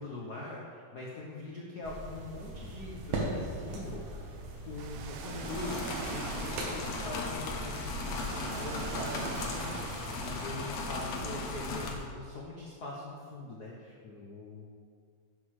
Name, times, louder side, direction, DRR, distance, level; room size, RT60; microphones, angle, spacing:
voice 1, 0.0-4.1 4.7-14.6, left 2 dB, 80° left, -3 dB, 0.9 m, -42 dB
sound 1, 1.8-12.1, right 2 dB, 75° right, 2.7 m, -41 dB
sound 2, 4.7-12.0, left 3 dB, 65° left, 1.9 m, -38 dB
Ocean, 4.8-10.6, right 10 dB, 90° right, 1.5 m, -43 dB
10.5 x 6.9 x 6.4 m, 2.1 s
omnidirectional pair, 3.6 m